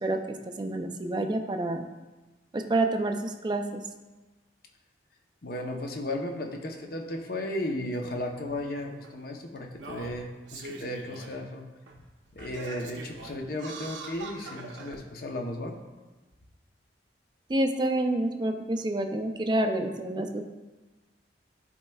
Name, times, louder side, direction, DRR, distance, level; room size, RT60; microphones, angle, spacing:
voice 1, 0.0-1.9 2.5-3.8 17.5-20.4, right 1 dB, 25° right, 6 dB, 0.4 m, -28 dB
voice 2, 5.4-11.6 12.3-15.8, left 1 dB, 55° left, 2 dB, 0.7 m, -35 dB
Singing, 7.9-8.0 9.0-9.1 9.7-11.4 11.9-12.0 12.4-15.0 15.7-15.8, right 3 dB, 85° right, 0.8 m, -42 dB
11.0 x 4.3 x 2.3 m, 1.2 s
head